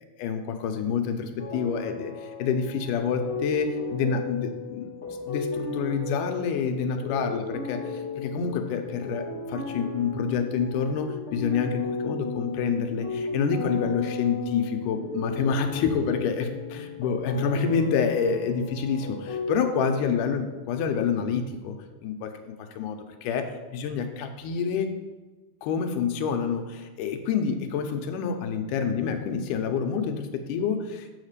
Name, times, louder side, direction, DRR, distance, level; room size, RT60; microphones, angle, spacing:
voice 1, 0.2-4.9 5.3-21.8 22.0-23.4 23.7-24.9 25.6-31.1, left 6 dB, 80° left, 6 dB, 2.2 m, -28 dB
sound 1, 1.4-19.6, left 3 dB, 55° left, 0.7 m, -35 dB
7.9 x 4.1 x 6.6 m, 1.2 s
omnidirectional pair, 3.8 m